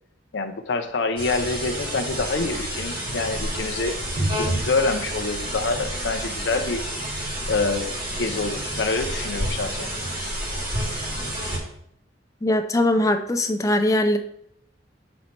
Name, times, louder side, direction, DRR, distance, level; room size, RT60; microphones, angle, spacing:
voice 1, 0.3-6.8 7.5-7.9 8.2-9.9, left 3 dB, 75° left, 4 dB, 0.6 m, -26 dB
sound 1, 1.2-11.6, right 1 dB, 55° right, 2.4 m, -29 dB
voice 2, 12.4-14.2, left 1 dB, 20° left, 7 dB, 0.5 m, -21 dB
6.3 x 4.2 x 4.4 m, 0.71 s
head